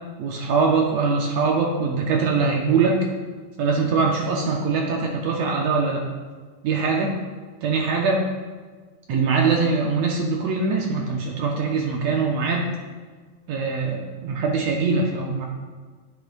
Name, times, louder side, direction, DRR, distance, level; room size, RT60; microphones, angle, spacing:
voice 1, 0.2-3.0 3.6-6.1 6.6-7.2 7.6-8.3 9.1-12.8 13.5-15.5, right 4 dB, 75° right, 0 dB, 1.8 m, -22 dB
13.0 x 7.8 x 2.2 m, 1.4 s
omnidirectional pair, 3.7 m